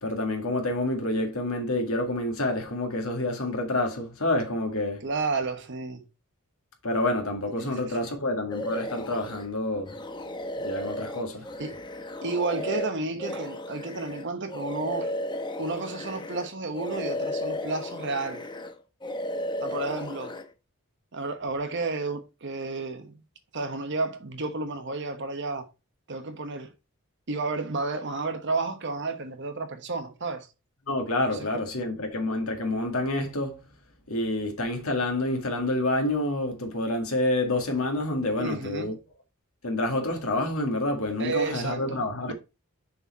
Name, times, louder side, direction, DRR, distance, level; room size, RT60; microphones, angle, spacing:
voice 1, 0.0-5.0 6.8-10.0 10.6-11.5 30.9-33.6 34.1-38.9 39.6-42.3, left 1 dB, 75° left, 2.0 m, -28 dB
voice 2, 5.0-6.0 7.6-8.2 11.6-11.8 12.2-15.1 15.6-18.4 19.6-20.3 21.1-23.2 23.5-25.7 26.1-26.7 27.3-30.5 31.4-31.5 38.4-38.9 41.2-42.0, right 3 dB, 55° right, 1.2 m, -31 dB
sound 1, 8.5-9.5 9.9-16.5 16.7-18.7 19.0-20.4, left 1 dB, 20° left, 0.8 m, -34 dB
6.7 x 4.3 x 4.1 m
head